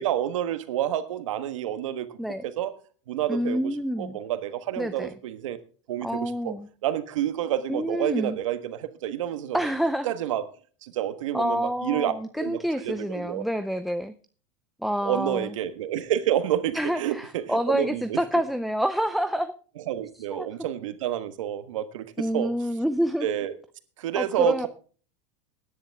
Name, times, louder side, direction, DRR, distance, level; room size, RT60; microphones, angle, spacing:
voice 1, 0.0-2.2 2.4-2.7 3.1-3.6 4.0-5.6 5.9-6.5 6.8-9.6 10.0-10.4 10.8-13.4 15.0-18.2 19.9-22.5 23.2-23.5 24.0-24.7, right 11 dB, 85° right, 1.5 m, -29 dB
voice 2, 3.3-4.2 4.8-5.1 6.0-6.7 7.7-8.4 9.5-10.1 11.3-14.1 14.8-15.6 16.7-19.5 20.3-20.5 22.2-23.3 24.2-24.7, equal, ahead, 0.5 m, -27 dB
17.0 x 10.5 x 3.5 m
supercardioid pair, 135°, 16 cm